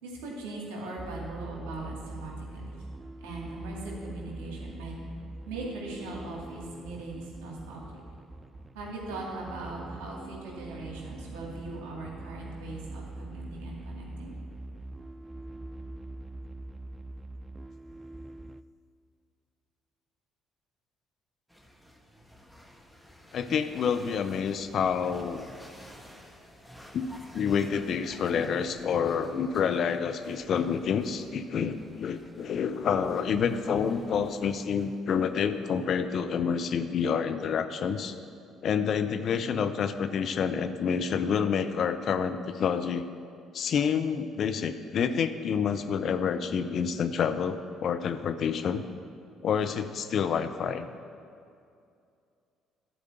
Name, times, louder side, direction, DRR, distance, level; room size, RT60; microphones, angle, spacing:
voice 1, 0.0-2.7 3.2-4.9 5.5-7.9 8.7-14.4, right 2 dB, 75° right, -2 dB, 2.3 m, -40 dB
sound 1, 1.0-18.6, right 2 dB, 20° right, 0.4 m, -43 dB
sound 2, 21.5-35.8, equal, ahead, 1.5 m, -52 dB
voice 2, 23.3-25.5 26.9-27.1 27.3-38.1 38.6-43.1 43.5-48.8 49.4-50.9, left 7 dB, 55° left, 10 dB, 0.6 m, -28 dB
11.0 x 4.9 x 8.0 m, 2.5 s
hypercardioid pair, 55°, 0 cm